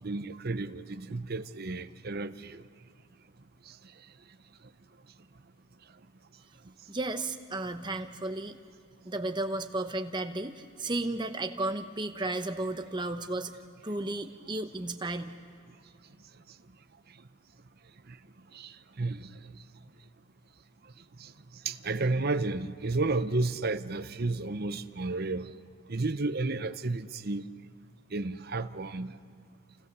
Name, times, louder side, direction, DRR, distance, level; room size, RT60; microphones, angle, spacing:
voice 1, 0.0-2.6 3.7-3.8 18.1-18.2 18.5-19.4 21.2-21.3 21.6-25.5 25.9-27.5 28.1-29.2, right 3 dB, 45° right, 0.7 m, -32 dB
voice 2, 6.9-8.6 9.0-13.5 13.8-15.4, right 2 dB, 20° right, 1.0 m, -33 dB
29.5 x 28.5 x 6.9 m
head